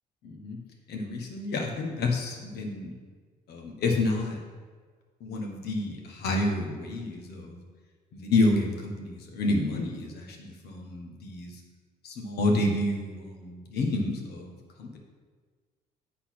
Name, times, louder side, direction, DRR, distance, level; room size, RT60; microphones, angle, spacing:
voice 1, 0.2-0.6 0.9-2.9 3.5-4.4 5.2-7.6 8.1-11.6 12.0-15.0, left 2 dB, 70° left, 2 dB, 1.5 m, -29 dB
8.2 x 4.2 x 6.0 m, 1.5 s
cardioid pair, 110°, 17 cm